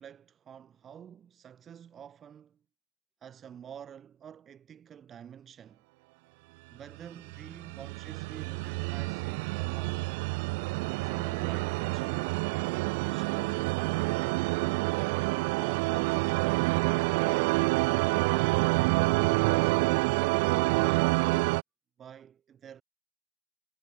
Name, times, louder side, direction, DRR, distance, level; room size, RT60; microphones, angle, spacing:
voice 1, 0.0-2.6 3.2-5.8 6.7-10.1 11.0-12.4 12.8-14.6 15.3-17.3 18.3-21.3 22.0-22.8, right 8 dB, 35° right, 7.2 m, -48 dB
sound 1, 7.3-21.6, right 28 dB, 75° right, 1.1 m, -27 dB
supercardioid pair, 105°, 0 cm